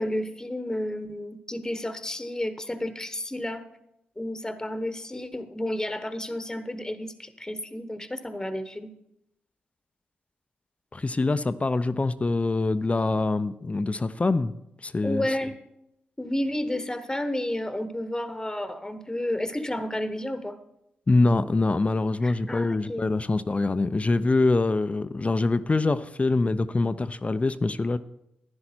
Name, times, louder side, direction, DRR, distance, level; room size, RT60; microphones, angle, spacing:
voice 1, 0.0-3.6 4.2-8.9 15.0-15.5 16.2-20.6 22.2-23.1, left 1 dB, 15° left, 10 dB, 1.1 m, -31 dB
voice 2, 10.9-14.5 14.8-15.2 21.1-28.0, left 3 dB, 30° left, 13 dB, 0.6 m, -24 dB
11.0 x 9.6 x 4.4 m, 0.82 s
supercardioid pair, 45°, 4 cm